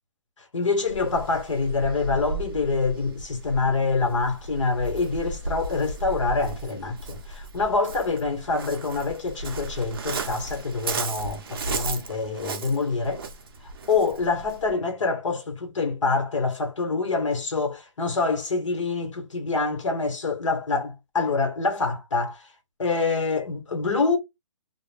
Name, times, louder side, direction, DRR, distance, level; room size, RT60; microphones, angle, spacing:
voice 1, 0.5-13.2 13.9-22.5 22.8-24.2, left 4 dB, 75° left, 1.3 m, -26 dB
Waves surf, 0.8-14.7, right 3 dB, 45° right, 0.6 m, -35 dB
2.4 x 2.1 x 3.3 m
hypercardioid pair, 175°, 16 cm